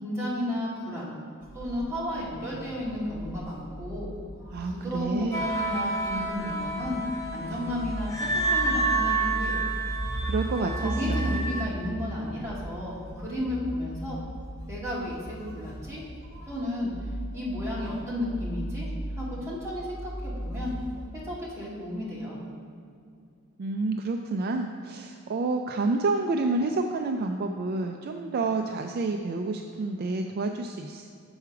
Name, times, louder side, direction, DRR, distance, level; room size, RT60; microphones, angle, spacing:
voice 1, 0.0-1.2 1.5-4.1 4.7-7.0 7.3-9.6 10.8-14.2 14.7-16.0 16.5-18.9 19.2-20.7 21.2-22.4, left 1 dB, 15° right, -7 dB, 1.8 m, -33 dB
sound 1, 1.4-21.0, right 1 dB, 65° left, 1.8 m, -37 dB
voice 2, 4.5-5.4 10.2-11.3 23.6-31.1, right 3 dB, 45° right, 4 dB, 0.3 m, -29 dB
sound 2, 5.3-11.6, right 3 dB, 15° left, 0.7 m, -29 dB
7.1 x 4.7 x 5.7 m, 2.3 s
head